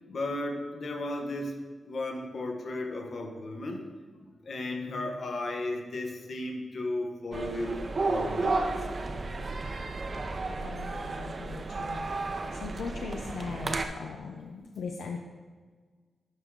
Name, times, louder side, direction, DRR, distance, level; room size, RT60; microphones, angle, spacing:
voice 1, 0.1-1.5 1.8-3.8 4.4-8.8, left 2 dB, 65° left, 3 dB, 1.1 m, -35 dB
sound 1, 7.3-13.8, right 3 dB, 45° right, 0.6 m, -33 dB
voice 2, 10.6-15.2, left 5 dB, 90° left, 2 dB, 0.5 m, -40 dB
11.5 x 4.8 x 3.7 m, 1.5 s
cardioid pair, 75°, 0 cm